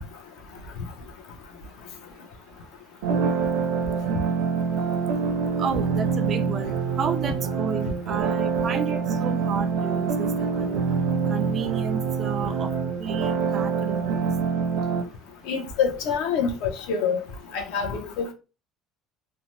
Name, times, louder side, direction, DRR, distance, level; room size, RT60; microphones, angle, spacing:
sound 1, 3.0-15.0, right 5 dB, 80° right, 0.6 m, -25 dB
voice 1, 5.6-10.9 11.3-14.3, right 6 dB, 30° right, 0.3 m, -32 dB
voice 2, 15.4-17.2 17.5-18.3, left 6 dB, 70° left, 0.7 m, -26 dB
2.8 x 2.1 x 3.0 m
cardioid pair, 180°, 0 cm